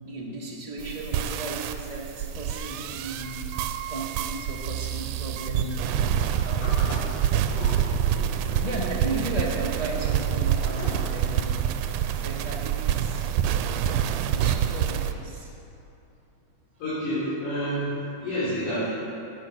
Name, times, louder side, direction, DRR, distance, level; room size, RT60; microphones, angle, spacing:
voice 1, 0.0-3.4 3.9-5.8 6.4-7.0 8.6-11.5 12.1-13.2 14.3-15.5, right 1 dB, 40° left, -4 dB, 0.5 m, -35 dB
sound 1, 0.8-15.1, right 9 dB, 90° right, 2.1 m, -27 dB
Sliding door, 6.2-11.7, left 1 dB, 55° left, 3.1 m, -40 dB
voice 2, 16.8-18.9, equal, 85° left, -12 dB, 5.2 m, -28 dB
13.5 x 9.4 x 6.1 m, 2.8 s
omnidirectional pair, 3.5 m